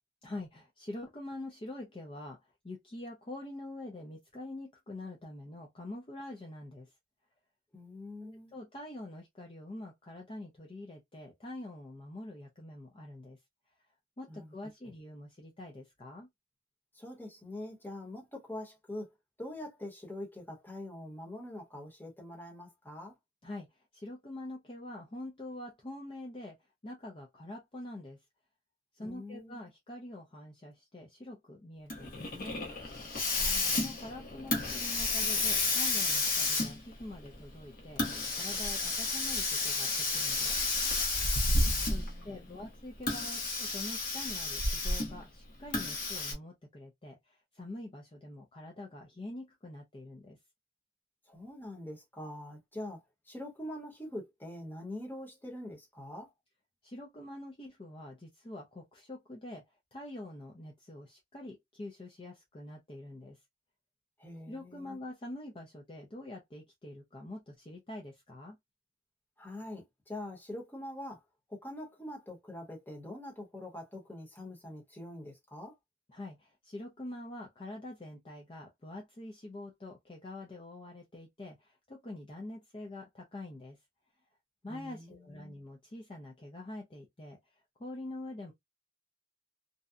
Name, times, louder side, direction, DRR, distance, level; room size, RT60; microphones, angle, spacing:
voice 1, 0.2-6.9 8.2-13.4 14.2-16.3 23.4-26.6 26.8-28.2 28.9-32.6 33.7-38.1 38.3-40.6 41.8-50.4 56.8-59.6 59.9-63.4 64.5-68.6 76.1-83.8 84.6-87.4 87.8-88.5, left 1 dB, 30° left, 0.5 m, -45 dB
voice 2, 7.7-8.6 14.3-14.5 16.9-19.1 19.4-23.2 29.0-29.7 33.3-33.7 41.6-42.7 51.3-56.3 64.2-65.0 69.4-71.2 71.5-75.7 84.7-85.5, left 1 dB, 10° left, 0.9 m, -44 dB
Hiss, 31.9-42.2 43.0-45.2 45.7-46.3, left 3 dB, 50° left, 0.9 m, -31 dB
2.7 x 2.1 x 2.4 m
head